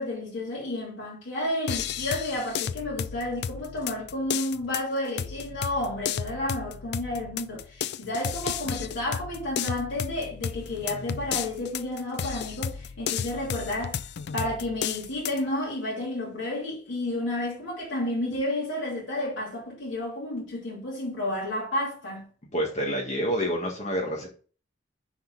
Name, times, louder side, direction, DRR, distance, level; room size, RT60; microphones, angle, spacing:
voice 1, 0.0-22.3, left 1 dB, 75° left, 2.7 m, -31 dB
sound 1, 1.7-15.4, left 8 dB, 55° left, 0.4 m, -33 dB
voice 2, 22.5-24.3, equal, 35° left, 1.5 m, -28 dB
9.9 x 4.2 x 3.9 m
head